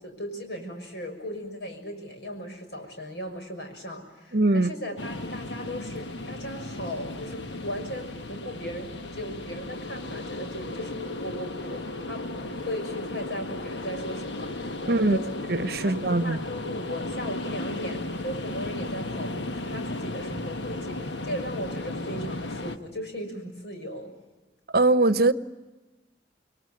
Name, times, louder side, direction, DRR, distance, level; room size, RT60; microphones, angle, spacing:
voice 1, 0.0-15.3 15.8-15.9 16.2-24.1, equal, 70° left, 6.3 m, -37 dB
voice 2, 4.3-4.7 14.9-15.2 15.5-16.4 24.7-25.3, right 2 dB, 60° right, 1.0 m, -21 dB
sound 1, 5.0-22.8, left 2 dB, 90° left, 1.3 m, -35 dB
28.0 x 22.0 x 9.4 m
head